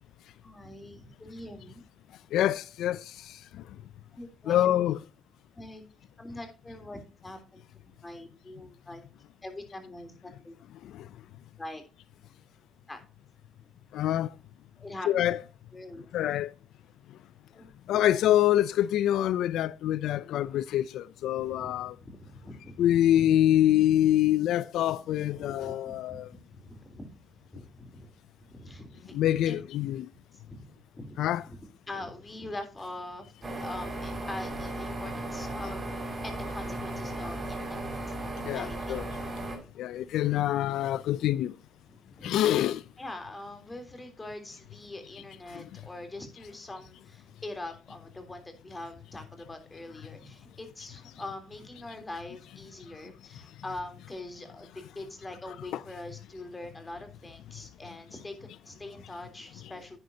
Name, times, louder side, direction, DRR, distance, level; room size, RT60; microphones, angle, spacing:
voice 1, 0.4-1.8 4.1-4.7 5.5-5.8 6.2-7.6 8.0-9.0 9.4-10.6 11.6-11.8 12.9-13.0 14.8-15.2 15.7-16.1 17.5-18.0 21.4-24.1 25.3-26.2 26.5-27.1 27.5-28.1 28.5-29.1 29.4-29.6 30.3-37.8 38.1-38.2 38.5-39.0 41.8-42.4 43.0-60.0, left 2 dB, 20° left, 3.4 m, -43 dB
voice 2, 2.3-3.0 4.5-5.0 13.9-14.3 15.1-15.4 16.1-16.5 17.9-21.9 22.8-26.3 29.1-30.1 31.2-31.4 38.5-39.0 39.8-41.5 42.2-42.8 55.7-55.8, left 12 dB, 85° left, 0.4 m, -25 dB
sound 1, 33.4-39.6, right 1 dB, 25° right, 6.2 m, -36 dB
10.5 x 9.6 x 2.8 m
cardioid pair, 90°, 0 cm